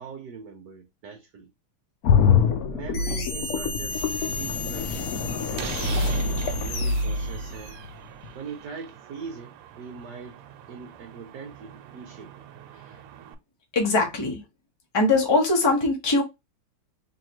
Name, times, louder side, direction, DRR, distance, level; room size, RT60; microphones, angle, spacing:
voice 1, 0.0-1.5 2.7-6.1 6.6-7.8 8.3-10.4 10.7-12.3, right 5 dB, 60° right, 1.2 m, -41 dB
sound 1, 2.0-7.9 8.2-8.3, left 8 dB, 85° left, 0.7 m, -26 dB
sound 2, 2.9-7.8, equal, 70° left, 1.7 m, -30 dB
Slam, 4.7-13.4, right 9 dB, 90° right, 1.6 m, -42 dB
voice 2, 13.7-14.4 14.9-16.2, left 2 dB, 20° left, 0.6 m, -21 dB
3.6 x 3.2 x 2.9 m
omnidirectional pair, 2.4 m